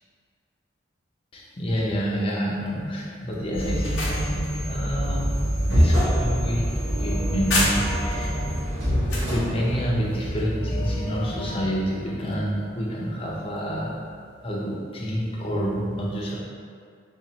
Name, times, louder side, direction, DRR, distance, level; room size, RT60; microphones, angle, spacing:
voice 1, 1.3-5.4 5.7-8.6 9.3-13.9 14.4-16.4, equal, 30° left, -4 dB, 0.5 m, -28 dB
sound 1, 3.5-11.6, equal, 75° right, 1.3 m, -26 dB
sound 2, 3.6-8.2 8.6-9.4, left 2 dB, 75° left, 0.7 m, -31 dB
3.9 x 2.4 x 2.8 m, 2.2 s
head